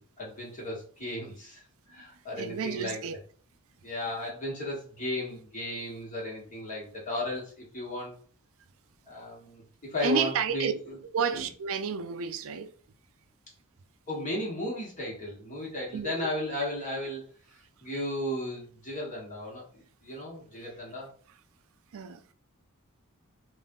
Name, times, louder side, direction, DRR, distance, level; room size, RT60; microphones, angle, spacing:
voice 1, 0.0-3.0 3.8-8.2 9.1-11.0 11.3-11.5 14.1-21.1, left 1 dB, 35° left, 1.6 m, -35 dB
voice 2, 2.4-3.2 10.0-10.7 11.1-12.7 15.9-16.3 21.9-22.2, right 6 dB, 65° right, 0.4 m, -30 dB
3.5 x 2.5 x 3.8 m
head